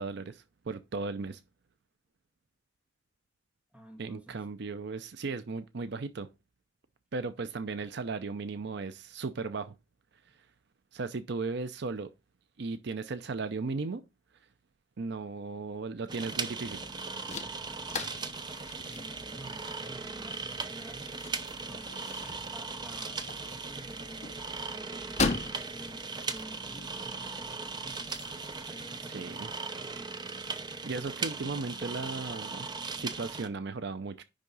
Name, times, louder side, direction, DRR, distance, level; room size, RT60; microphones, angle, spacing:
voice 1, 0.0-1.4 4.0-6.3 7.1-9.7 10.9-12.1 12.6-14.0 15.0-16.8 29.1-29.5 30.8-32.7 33.0-34.2, right 4 dB, 60° right, 0.6 m, -36 dB
voice 2, 3.7-4.5 18.9-21.2 21.6-28.2 28.6-30.1, equal, 5° right, 1.9 m, -51 dB
sound 1, 16.1-33.5, right 4 dB, 25° right, 0.7 m, -38 dB
sound 2, 16.3-28.7, left 4 dB, 35° left, 1.0 m, -40 dB
10.5 x 3.7 x 5.3 m
head